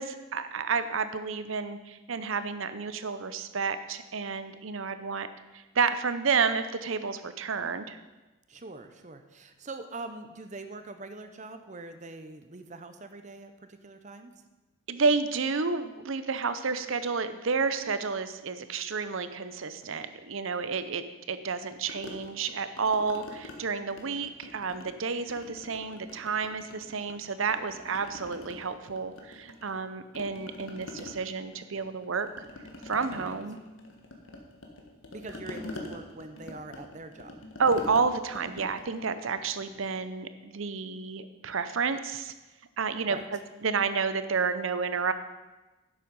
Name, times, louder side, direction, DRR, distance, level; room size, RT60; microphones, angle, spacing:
voice 1, 0.0-5.3 5.5-8.0 14.9-32.3 32.8-33.6 37.6-42.3 42.8-45.1, right 5 dB, 70° right, 11 dB, 0.7 m, -30 dB
voice 2, 8.5-14.3 33.1-33.4 35.1-37.4 43.1-43.2, right 3 dB, 35° right, 8 dB, 0.7 m, -43 dB
sound 1, 21.9-23.6 23.9-25.0 25.3-27.2 27.5-29.9 30.1-40.0, left 2 dB, 65° left, 1.5 m, -45 dB
11.0 x 7.6 x 5.3 m, 1.1 s
head